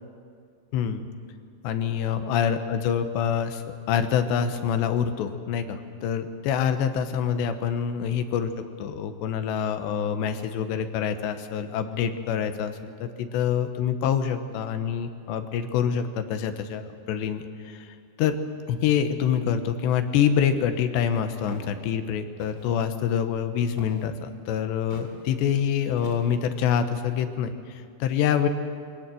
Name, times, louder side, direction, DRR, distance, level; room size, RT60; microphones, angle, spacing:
voice 1, 0.7-1.0 1.6-8.5 8.8-17.9 18.2-18.4 18.7-28.5, left 8 dB, 80° left, 9 dB, 3.2 m, -26 dB
Walk footsteps, 21.5-21.7 22.4-22.8 23.8-24.1 24.9-25.1 26.0-26.5, left 1 dB, 15° left, 3.1 m, -43 dB
22.5 x 18.5 x 7.7 m, 2.2 s
omnidirectional pair, 5.0 m